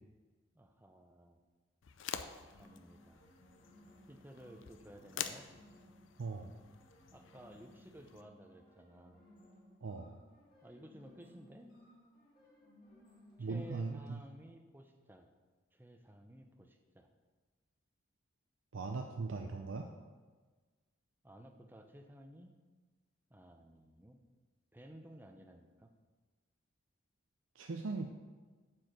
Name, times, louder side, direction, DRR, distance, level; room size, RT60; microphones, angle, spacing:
voice 1, 0.5-1.4 2.6-3.2 4.1-5.5 7.1-9.2 10.6-11.7 13.4-15.3 15.7-17.1 21.2-22.5 23.3-24.2 24.7-25.9, right 1 dB, 10° right, 5 dB, 0.6 m, -55 dB
sound 1, 1.8-8.2, left 8 dB, 65° left, 0.5 m, -48 dB
sound 2, 2.5-14.2, left 1 dB, 25° left, 2.4 m, -62 dB
voice 2, 6.2-6.5 9.8-10.1 13.4-14.2 18.7-19.9 27.6-28.1, right 3 dB, 70° right, 3 dB, 0.5 m, -39 dB
7.5 x 4.6 x 6.5 m, 1.4 s
head